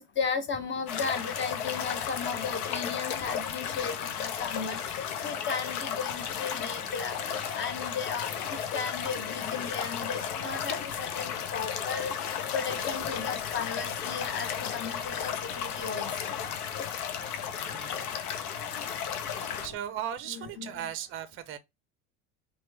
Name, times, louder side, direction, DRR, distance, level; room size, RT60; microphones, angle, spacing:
voice 1, 0.2-12.1 12.5-16.3 20.3-20.8, left 5 dB, 25° left, 0.8 m, -35 dB
sound 1, 0.9-19.7, left 8 dB, 80° left, 0.7 m, -34 dB
Piano, 3.7-18.9 19.4-19.8, left 2 dB, 40° left, 1.6 m, -52 dB
voice 2, 17.6-18.0 19.6-21.6, right 10 dB, 30° right, 0.5 m, -37 dB
3.0 x 2.3 x 3.2 m
hypercardioid pair, 100°, 44 cm